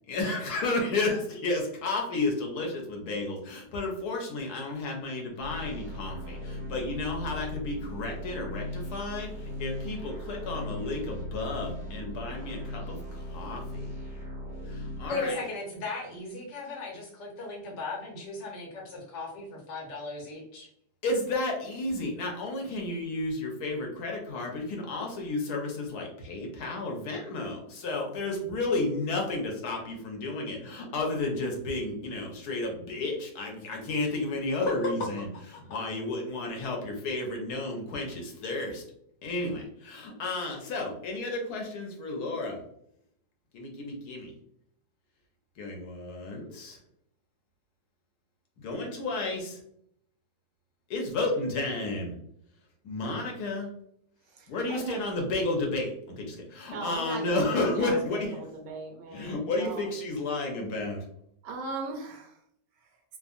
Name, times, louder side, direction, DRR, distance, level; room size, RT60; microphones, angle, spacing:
voice 1, 0.1-13.9 14.7-15.4 21.0-35.3 35.5-38.8 39.2-42.6 43.5-44.3 45.6-46.8 48.6-49.6 50.9-52.1 52.8-53.7 54.5-58.4 59.1-61.0, left 2 dB, 70° left, 0 dB, 1.2 m, -32 dB
sound 1, 5.4-15.1, left 1 dB, 50° right, 1.0 m, -38 dB
voice 2, 15.1-20.7, left 3 dB, 90° left, -2 dB, 1.7 m, -37 dB
voice 3, 54.4-55.2 56.7-59.9 61.4-62.3, right 3 dB, 80° right, 2 dB, 1.3 m, -38 dB
3.6 x 2.0 x 2.4 m, 0.69 s
omnidirectional pair, 1.8 m